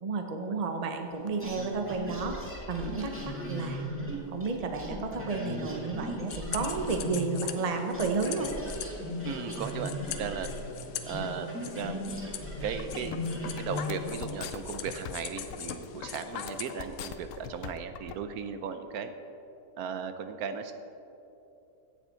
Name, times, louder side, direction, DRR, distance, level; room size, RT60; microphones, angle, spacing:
voice 1, 0.0-3.8 4.3-8.5, right 4 dB, 30° right, 4 dB, 0.8 m, -32 dB
sound 1, 1.4-7.7 7.9-14.2, left 1 dB, 10° right, 2.0 m, -37 dB
sound 2, 6.3-17.5, left 9 dB, 85° left, 1.3 m, -42 dB
voice 2, 9.2-10.5 11.0-12.0 12.6-19.1 19.8-20.7, right 6 dB, 75° right, 9 dB, 1.1 m, -36 dB
sound 3, 12.6-18.1, left 8 dB, 65° left, 1.0 m, -40 dB
16.0 x 7.3 x 4.4 m, 2.9 s
omnidirectional pair, 1.6 m